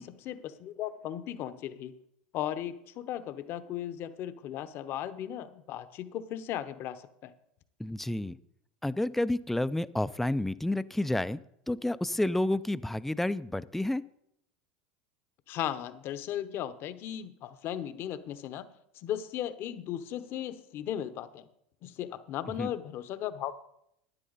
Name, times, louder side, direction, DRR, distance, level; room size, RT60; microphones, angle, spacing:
voice 1, 0.0-2.0 2.3-7.3 15.5-18.7 18.9-21.4 21.8-23.5, left 11 dB, 50° left, 12 dB, 0.8 m, -36 dB
voice 2, 7.8-8.4 8.8-11.4 11.7-14.0 22.6-22.7, left 1 dB, 5° left, 16 dB, 0.4 m, -30 dB
12.0 x 9.8 x 4.0 m, 0.76 s
hypercardioid pair, 95°, 5 cm